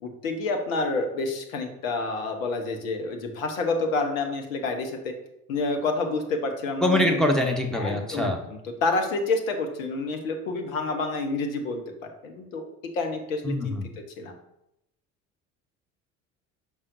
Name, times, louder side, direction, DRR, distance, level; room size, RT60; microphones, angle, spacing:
voice 1, 0.0-5.1 5.5-7.2 7.7-11.8 12.2-12.6 12.9-13.7 14.2-14.3, left 3 dB, 75° left, 5 dB, 1.1 m, -28 dB
voice 2, 6.8-8.4 13.4-13.9, left 1 dB, ahead, 3 dB, 1.1 m, -24 dB
6.5 x 5.6 x 2.6 m, 0.83 s
hypercardioid pair, 65°, 41 cm